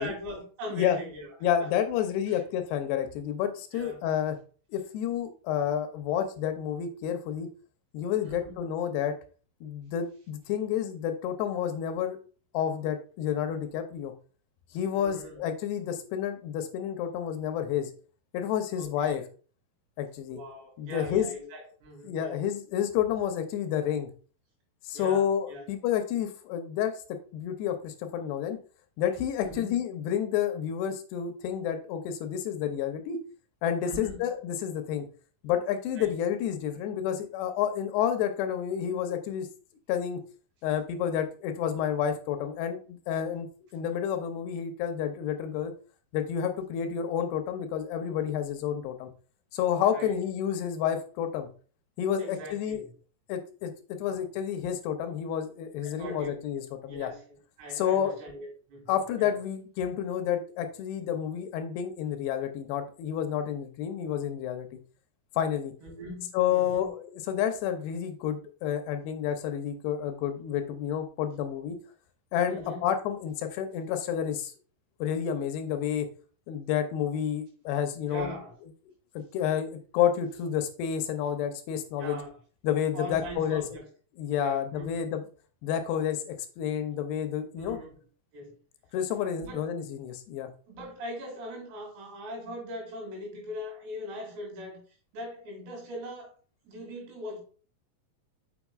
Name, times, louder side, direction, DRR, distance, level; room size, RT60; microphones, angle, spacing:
voice 1, 0.0-1.7 2.3-2.4 3.7-4.0 8.2-8.6 14.9-15.4 18.8-19.2 20.3-22.4 24.9-25.6 29.4-29.8 33.8-34.2 36.0-36.1 49.9-50.2 52.2-52.9 54.1-54.2 55.8-56.4 56.9-59.3 65.8-66.9 72.5-72.8 78.0-78.5 82.0-82.4 82.9-83.9 84.4-85.1 87.5-88.0 88.3-88.6 89.4-89.6 90.7-94.8 95.1-96.3 96.6-97.4, equal, 90° right, -1 dB, 4.7 m, -41 dB
voice 2, 1.4-4.4 4.7-7.5 7.9-9.1 9.6-12.2 12.5-14.1 14.7-17.9 18.3-19.2 20.0-20.4 20.8-21.3 22.0-24.1 24.9-26.9 27.3-28.6 29.0-33.2 33.6-35.1 35.4-39.5 39.9-40.2 40.6-45.7 46.1-49.1 49.5-51.5 52.0-52.8 53.3-57.1 57.7-58.1 58.9-64.7 65.4-65.7 66.3-71.8 72.3-74.5 75.0-76.1 76.5-78.3 79.2-82.2 82.6-83.6 84.2-85.2 85.6-87.8 88.9-90.5, left 9 dB, 85° left, 7 dB, 2.7 m, -30 dB
7.1 x 5.8 x 2.3 m, 0.39 s
omnidirectional pair, 4.7 m